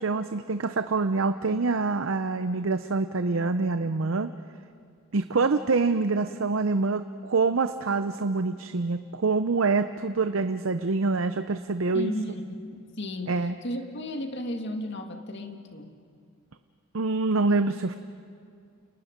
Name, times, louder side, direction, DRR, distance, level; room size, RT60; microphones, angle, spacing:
voice 1, 0.0-4.3 5.1-12.1 13.3-13.6 16.9-18.0, right 3 dB, 70° right, 10 dB, 0.7 m, -26 dB
voice 2, 11.9-16.0, left 1 dB, 55° left, 4 dB, 2.0 m, -34 dB
30.0 x 29.0 x 5.2 m, 2.2 s
head